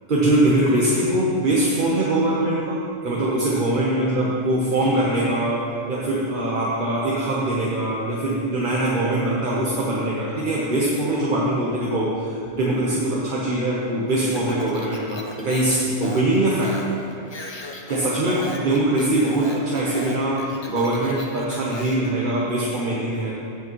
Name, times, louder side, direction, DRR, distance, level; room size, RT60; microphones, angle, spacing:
voice 1, 0.1-16.9 17.9-23.3, right 1 dB, 45° right, -5 dB, 1.1 m, -22 dB
Speech, 14.3-22.1, left 2 dB, 30° left, 0.6 m, -37 dB
15.5 x 6.1 x 3.1 m, 2.6 s
omnidirectional pair, 1.3 m